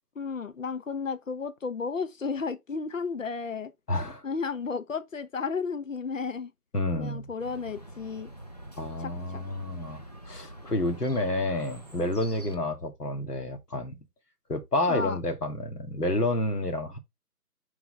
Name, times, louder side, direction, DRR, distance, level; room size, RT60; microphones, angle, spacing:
voice 1, 0.2-3.7 4.2-6.5 6.9-8.3 9.0-9.4 14.9-15.2, left 5 dB, 55° left, 1.0 m, -33 dB
voice 2, 3.9-4.2 6.7-7.3 8.8-14.0 14.5-17.0, left 2 dB, 75° left, 2.3 m, -29 dB
Chirp tweet, 7.4-12.6, right 1 dB, 25° left, 0.6 m, -45 dB
6.2 x 4.6 x 3.5 m
figure-of-eight pair, 160°, 47 cm